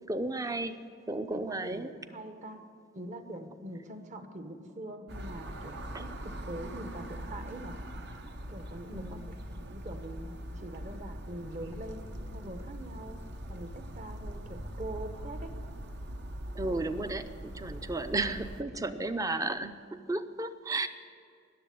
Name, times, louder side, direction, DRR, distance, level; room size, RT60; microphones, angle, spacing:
voice 1, 0.1-0.8 1.1-1.9 8.9-9.4 16.5-20.9, right 2 dB, 15° right, 10 dB, 0.6 m, -33 dB
voice 2, 1.3-2.6 2.9-7.8 8.5-13.2 13.5-15.6 18.8-19.0, right 1 dB, 35° right, 8 dB, 1.1 m, -44 dB
sound 1, 5.1-18.6, equal, 60° right, 1.1 m, -42 dB
20.0 x 7.6 x 9.4 m, 2.2 s
head